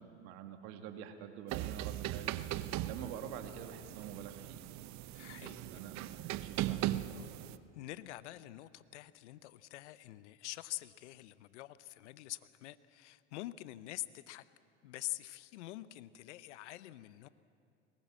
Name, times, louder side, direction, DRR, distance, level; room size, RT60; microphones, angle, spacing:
voice 1, 0.0-4.6 5.3-7.3, right 8 dB, 70° right, 6 dB, 2.3 m, -47 dB
sound 1, 1.5-7.6, right 14 dB, 50° right, 0.9 m, -39 dB
voice 2, 5.1-5.8 7.7-14.4 14.8-17.3, left 16 dB, 80° left, 16 dB, 0.8 m, -46 dB
22.0 x 18.5 x 7.6 m, 2.4 s
hypercardioid pair, 85°, 35 cm